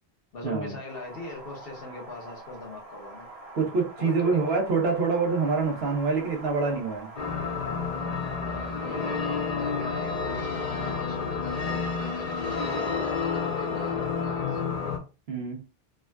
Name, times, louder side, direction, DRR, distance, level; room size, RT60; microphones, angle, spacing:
voice 1, 0.3-3.3 4.0-4.6 8.3-15.0, left 3 dB, 65° left, 1.2 m, -41 dB
Wind, 0.9-14.9, right 2 dB, 40° right, 0.8 m, -46 dB
voice 2, 3.5-7.1 15.3-15.6, right 4 dB, 85° right, 1.0 m, -26 dB
sound 1, 7.2-15.0, left 5 dB, 45° left, 0.6 m, -30 dB
3.5 x 2.2 x 2.3 m
omnidirectional pair, 1.0 m